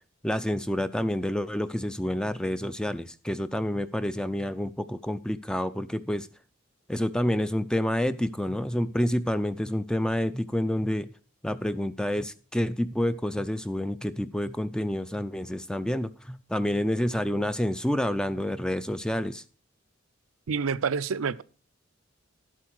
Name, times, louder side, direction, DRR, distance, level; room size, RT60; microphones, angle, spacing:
voice 1, 0.2-6.3 6.9-11.1 11.4-19.4, left 1 dB, 5° left, 0.4 m, -28 dB
voice 2, 20.5-21.4, right 5 dB, 85° right, 0.5 m, -28 dB
11.5 x 7.8 x 4.7 m
head